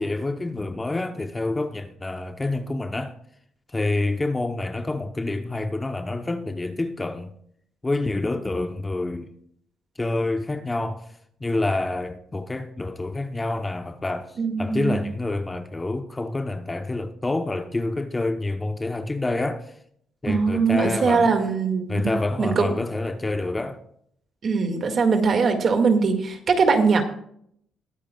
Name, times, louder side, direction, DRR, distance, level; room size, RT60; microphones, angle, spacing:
voice 1, 0.0-3.2 3.7-7.3 7.8-9.3 10.0-11.1 11.4-19.7 20.2-21.3 21.9-23.8, left 2 dB, 15° left, 0.8 m, -27 dB
voice 2, 14.4-15.0 20.3-22.1 22.4-22.8 24.4-27.0, right 5 dB, 40° right, 1.9 m, -21 dB
21.5 x 9.0 x 2.3 m
cardioid pair, 135°, 0 cm